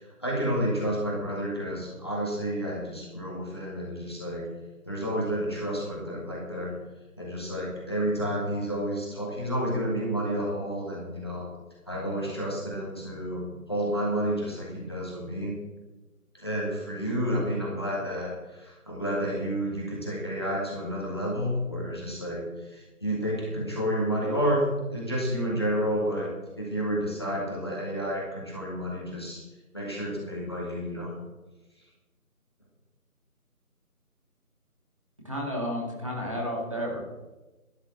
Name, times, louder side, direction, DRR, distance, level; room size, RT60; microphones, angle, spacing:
voice 1, 0.0-4.4 4.8-6.7 7.2-11.5 11.9-15.5 16.3-24.6 24.9-29.4 29.7-31.1, equal, 15° left, -4 dB, 1.9 m, -30 dB
voice 2, 35.2-37.0, equal, 20° right, -3 dB, 2.2 m, -31 dB
12.5 x 9.7 x 7.8 m, 1.1 s
figure-of-eight pair, 170°, 45 cm